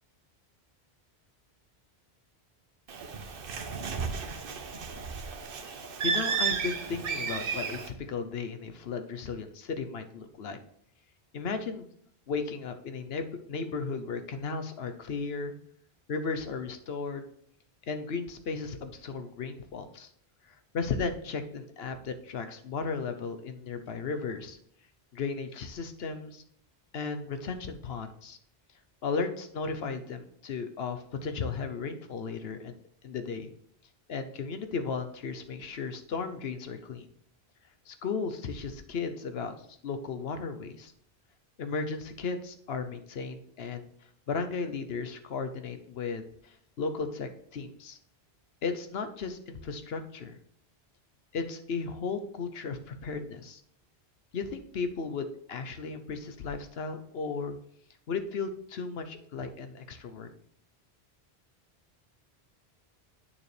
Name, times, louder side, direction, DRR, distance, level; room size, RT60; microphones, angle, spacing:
Bird, 2.9-7.9, right 5 dB, 60° right, 0.9 m, -33 dB
voice 1, 6.0-10.6 11.3-11.9 12.3-15.5 16.1-17.3 17.9-20.1 20.5-24.6 25.1-26.4 26.9-28.4 29.0-32.8 33.0-33.5 34.1-37.1 37.9-39.5 39.8-40.9 41.6-43.9 44.3-48.0 48.6-50.4 51.3-53.6 54.3-57.6 58.1-60.3, left 4 dB, 70° left, 8 dB, 1.0 m, -35 dB
8.7 x 6.9 x 3.3 m, 0.70 s
omnidirectional pair, 1.1 m